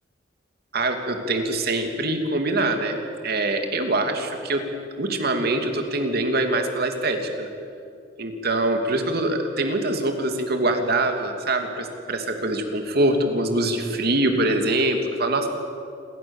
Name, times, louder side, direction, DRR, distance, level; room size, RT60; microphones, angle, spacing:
voice 1, 0.7-4.6 5.0-7.5 8.2-15.5, right 2 dB, 55° right, 5 dB, 2.9 m, -24 dB
29.0 x 23.0 x 7.4 m, 2.6 s
head